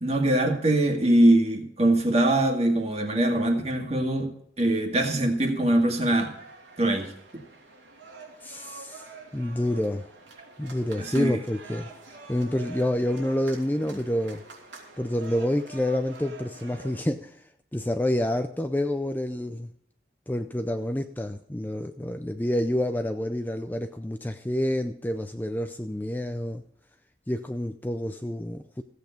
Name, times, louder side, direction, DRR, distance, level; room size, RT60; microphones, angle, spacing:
voice 1, 0.0-4.3 4.6-6.3 6.8-7.1 11.1-11.3, right 1 dB, 35° right, 3 dB, 2.1 m, -22 dB
sound 1, 6.2-17.0, right 3 dB, 90° right, 3.4 m, -46 dB
voice 2, 8.4-9.1 9.3-10.1 10.6-11.9 12.3-14.4 15.0-19.7 20.3-26.6 27.3-28.8, left 1 dB, 10° left, 7 dB, 0.5 m, -28 dB
15.5 x 8.2 x 5.2 m, 0.70 s
head